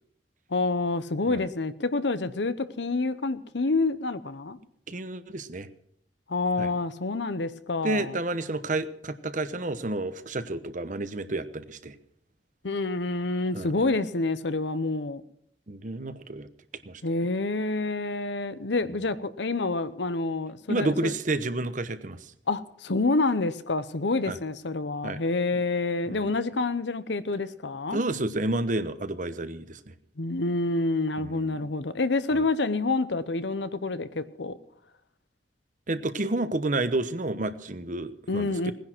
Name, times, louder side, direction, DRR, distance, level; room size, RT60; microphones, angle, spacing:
voice 1, 0.5-4.6 6.3-8.1 12.6-15.2 17.0-21.1 22.5-28.0 30.2-34.6 38.3-38.7, left 3 dB, 80° left, 14 dB, 0.9 m, -28 dB
voice 2, 4.9-5.7 6.6-6.7 7.8-12.0 13.5-13.9 15.7-16.5 16.9-17.0 20.7-22.3 24.3-24.4 25.0-25.2 26.1-26.3 27.9-29.9 31.2-31.6 32.3-32.5 35.9-38.7, right 2 dB, 45° right, 12 dB, 0.9 m, -30 dB
18.0 x 10.5 x 6.1 m, 0.69 s
head